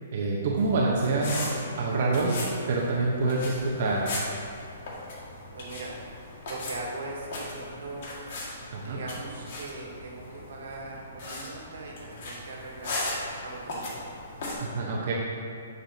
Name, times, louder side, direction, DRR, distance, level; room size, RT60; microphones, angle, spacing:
voice 1, 0.1-2.4 2.7-4.1 8.7-9.0 14.6-15.1, right 3 dB, 50° right, -3 dB, 1.0 m, -26 dB
sound 1, 0.6-14.5, left 2 dB, 50° left, 2.0 m, -38 dB
voice 2, 5.5-6.0 6.4-8.1 8.8-13.0 13.4-14.2, right 2 dB, 70° right, -2 dB, 1.8 m, -40 dB
9.8 x 6.7 x 2.8 m, 2.4 s
hypercardioid pair, 160°, 0 cm